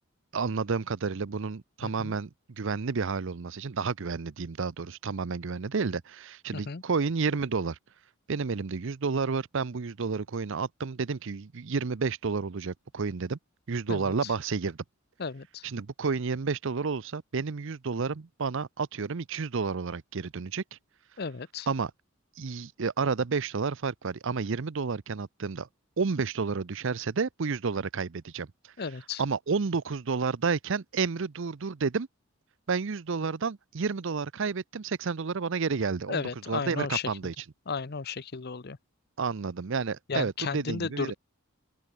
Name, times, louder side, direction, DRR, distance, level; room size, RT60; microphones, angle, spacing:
voice 1, 0.3-2.3 2.6-7.8 8.3-13.4 13.7-14.8 15.6-20.8 21.7-21.9 22.4-25.7 26.0-28.5 29.2-32.1 32.7-36.2 36.5-37.3 39.2-41.1, right 5 dB, 60° right, 0.6 m, -30 dB
voice 2, 1.8-2.1 6.5-6.8 13.9-14.3 15.2-15.6 21.2-21.7 28.8-29.2 36.1-37.1 37.7-38.8 40.1-41.1, left 5 dB, 50° left, 0.8 m, -34 dB
open air
head